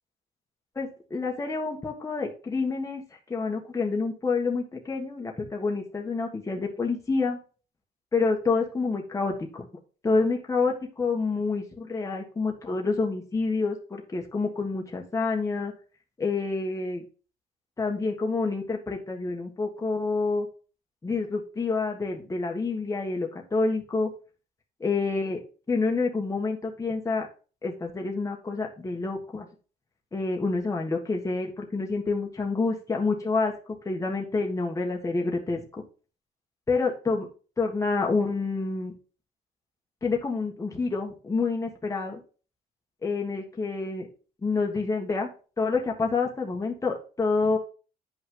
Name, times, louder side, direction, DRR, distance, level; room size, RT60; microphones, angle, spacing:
voice 1, 0.7-3.0 3.3-7.4 8.1-9.7 10.0-15.7 16.2-17.0 17.8-20.5 21.0-24.1 24.8-25.4 25.7-27.3 27.6-29.4 30.1-33.5 33.8-35.8 36.7-37.3 37.6-38.9 40.0-42.2 43.0-44.1 44.4-45.3 45.6-47.6, left 4 dB, 20° left, 0 dB, 1.6 m, -28 dB
9.4 x 5.7 x 3.8 m, 0.37 s
cardioid pair, 110°, 17 cm